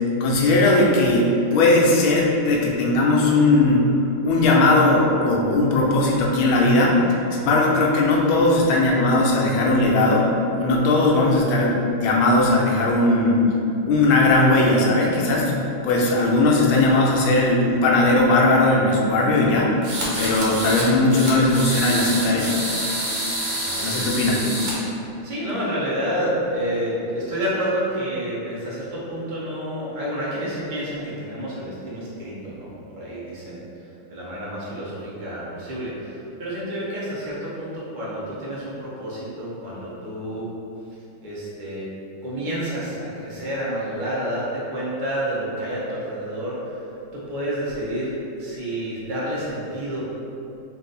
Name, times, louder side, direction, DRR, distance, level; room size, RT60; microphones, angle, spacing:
voice 1, 0.2-3.8 4.2-7.0 7.3-10.3 10.6-13.5 13.9-19.7 20.2-22.6 23.8-24.5, left 2 dB, 85° left, -2 dB, 1.5 m, -18 dB
sound 1, 19.8-20.9 21.1-24.7, right 1 dB, 60° right, 1.4 m, -27 dB
voice 2, 23.6-24.1 25.2-33.6 34.1-40.5 41.2-41.9 42.2-46.8 47.1-50.1, equal, 40° right, -8 dB, 0.7 m, -29 dB
4.0 x 2.7 x 3.9 m, 2.8 s
omnidirectional pair, 2.1 m